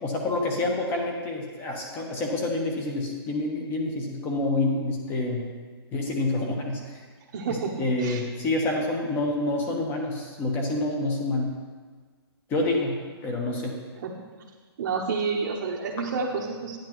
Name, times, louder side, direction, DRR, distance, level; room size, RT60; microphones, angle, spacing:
voice 1, 0.0-5.4 5.9-7.0 7.4-11.5 12.5-13.8, left 2 dB, 15° left, 1 dB, 1.1 m, -28 dB
voice 2, 7.3-8.2 14.0-14.1 14.8-16.8, right 5 dB, 40° right, -3 dB, 0.9 m, -29 dB
10.5 x 10.0 x 3.0 m, 1.5 s
hypercardioid pair, 170°, 14 cm